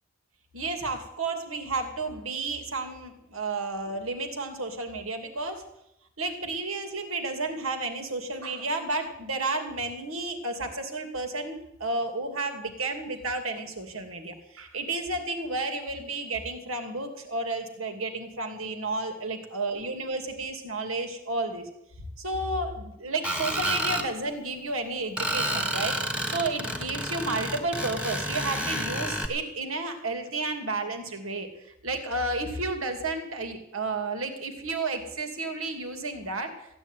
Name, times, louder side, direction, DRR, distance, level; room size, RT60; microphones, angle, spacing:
voice 1, 0.5-5.7 6.2-21.7 22.2-26.0 26.3-31.5 31.8-36.5, right 2 dB, 85° right, 6 dB, 2.7 m, -32 dB
Screech, 23.2-24.1 25.2-29.3, right 1 dB, 5° right, 1.5 m, -30 dB
15.0 x 10.5 x 9.2 m, 0.84 s
head